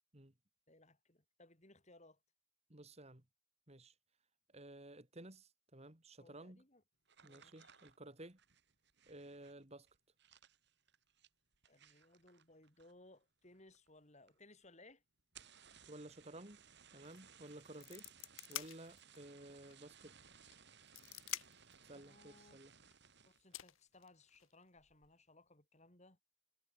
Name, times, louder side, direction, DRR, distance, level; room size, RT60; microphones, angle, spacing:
voice 1, 0.7-2.2 6.2-6.8 7.2-7.8 11.6-15.0 21.9-22.6 23.2-26.2, left 2 dB, 30° left, 4.7 m, -64 dB
voice 2, 2.7-3.2 3.7-3.9 4.5-6.6 7.2-8.4 9.1-9.9 15.9-16.6 16.9-18.1 18.5-20.1 21.8-22.7, right 1 dB, 30° right, 2.3 m, -54 dB
sound 1, 7.1-13.2 13.5-14.0 14.3-14.4 14.6-14.7 15.2-23.5 24.0-24.3 24.8-25.1, right 7 dB, 55° right, 5.7 m, -63 dB
sound 2, 17.0-17.2 17.5-19.3 19.7-19.8 20.5-21.7 22.9-23.0 23.5-24.5, left 13 dB, 70° left, 1.2 m, -47 dB
head